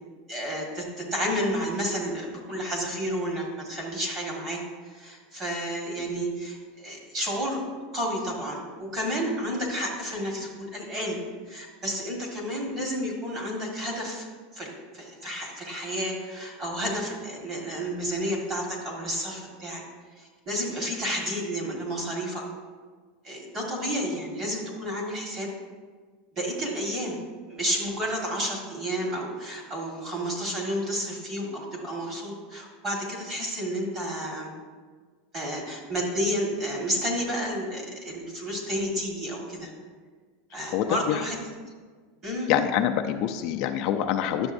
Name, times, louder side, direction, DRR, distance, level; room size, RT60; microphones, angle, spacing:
voice 1, 0.3-4.6 4.9-7.6 7.9-11.2 11.5-14.3 14.5-19.8 20.2-22.4 23.2-25.5 26.3-27.2 27.5-34.5 35.3-39.7 40.5-41.4 42.2-42.5, equal, 25° right, -1 dB, 1.6 m, -31 dB
voice 2, 40.7-41.2 42.5-44.5, left 10 dB, 45° left, 5 dB, 0.4 m, -25 dB
10.5 x 6.8 x 2.6 m, 1.5 s
supercardioid pair, 165°, 0 cm